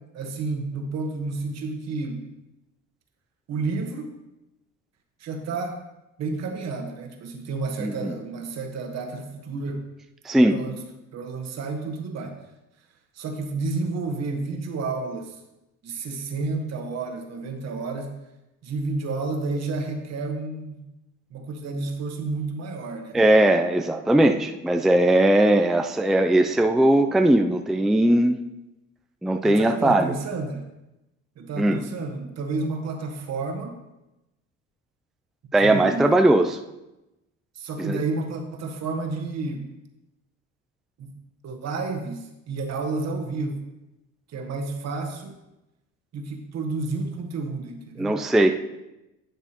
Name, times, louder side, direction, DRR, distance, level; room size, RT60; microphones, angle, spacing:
voice 1, 0.1-2.2 3.5-4.2 5.2-5.8 6.2-9.8 10.5-10.8 11.1-12.3 13.1-15.4 15.8-18.1 18.6-20.8 21.3-23.2 29.4-30.6 31.4-33.8 35.6-36.2 37.5-39.7 41.0-41.1 41.4-43.6 44.3-45.3 46.1-48.2, right 3 dB, 55° right, 3 dB, 1.4 m, -30 dB
voice 2, 7.8-8.1 10.3-10.6 23.1-28.4 29.2-30.1 31.6-31.8 35.5-36.6 37.8-38.0 48.0-48.6, right 1 dB, ahead, 6 dB, 0.4 m, -19 dB
10.5 x 7.0 x 3.0 m, 0.96 s
cardioid pair, 95°, 32 cm